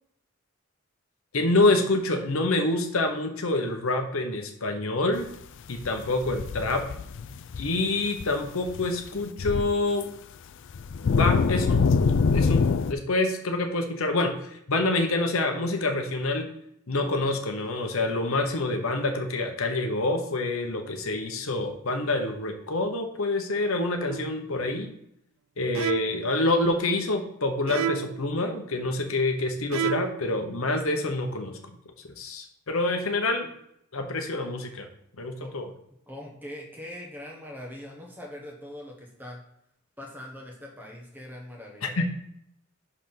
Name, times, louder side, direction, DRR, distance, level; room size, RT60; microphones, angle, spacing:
voice 1, 1.3-5.3 5.7-6.9 7.6-10.1 11.1-11.8 12.3-16.5 16.9-24.9 25.6-31.6 32.2-33.5 33.9-34.9 35.2-35.7 41.8-42.1, left 2 dB, 75° left, 5 dB, 0.9 m, -27 dB
sound 1, 5.8-7.9 8.2-8.4 8.7-8.9 9.2-9.7 10.0-10.1 10.7-12.9, left 4 dB, 60° left, 0.4 m, -24 dB
sound 2, 24.1-24.5 25.8-26.4 27.7-28.3 29.7-30.3, right 9 dB, 70° right, 0.3 m, -31 dB
voice 2, 36.1-39.4 40.0-42.1, left 1 dB, 10° right, -1 dB, 1.0 m, -42 dB
5.4 x 4.2 x 5.7 m, 0.76 s
head